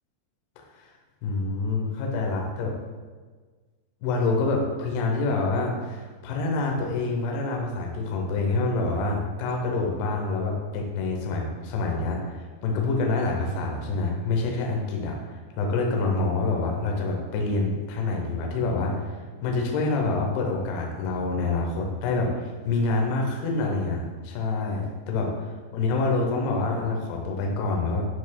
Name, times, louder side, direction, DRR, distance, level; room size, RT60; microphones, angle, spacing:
voice 1, 1.2-2.8 4.0-19.1 19.4-28.0, left 3 dB, 85° left, 1 dB, 2.3 m, -27 dB
9.9 x 4.1 x 2.3 m, 1.4 s
omnidirectional pair, 5.9 m